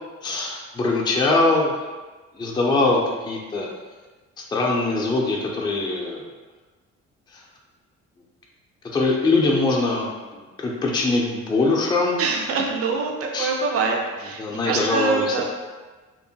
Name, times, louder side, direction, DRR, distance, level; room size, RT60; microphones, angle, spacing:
voice 1, 0.2-1.7 2.4-3.7 4.5-6.3 7.3-7.4 8.9-12.2 13.3-13.5 14.4-15.4, left 3 dB, 15° left, -2 dB, 0.4 m, -22 dB
voice 2, 12.2-15.4, right 4 dB, 50° right, 1 dB, 0.5 m, -25 dB
2.8 x 2.1 x 2.7 m, 1.3 s
cardioid pair, 90°, 30 cm